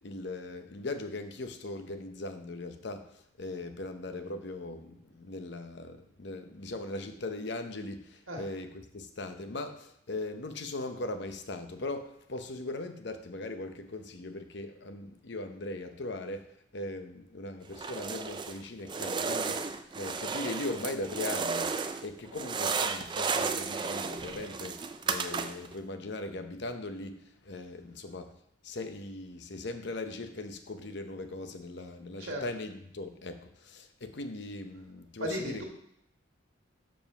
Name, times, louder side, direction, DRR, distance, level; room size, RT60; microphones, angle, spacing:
voice 1, 0.0-19.6 19.9-21.7 22.0-28.3 28.6-35.6, left 2 dB, 55° left, 8 dB, 0.7 m, -39 dB
sound 1, 17.7-18.6 18.9-22.1 22.3-25.7, right 5 dB, 20° right, 0.3 m, -33 dB
voice 2, 35.2-35.6, equal, 80° right, 0 dB, 1.9 m, -35 dB
7.0 x 5.1 x 5.6 m, 0.73 s
head